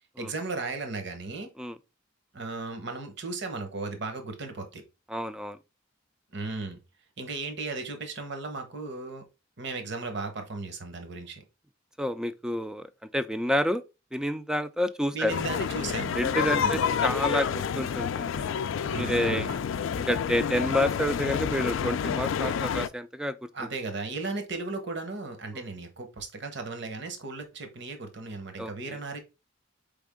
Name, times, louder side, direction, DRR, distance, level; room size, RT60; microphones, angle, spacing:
voice 1, 0.2-1.5 2.3-4.8 6.3-6.8 7.2-9.2 9.6-11.4 15.1-16.2 16.6-16.8 18.9-19.7 23.5-29.2, right 3 dB, 60° right, 1.0 m, -36 dB
voice 2, 5.1-5.6 12.0-12.9 13.1-13.8 14.1-15.4 16.2-18.5 19.0-19.5 20.1-23.4 28.6-29.0, equal, 5° right, 0.3 m, -29 dB
sound 1, 15.3-22.9, left 7 dB, 80° left, 0.3 m, -29 dB
4.4 x 3.4 x 3.5 m
head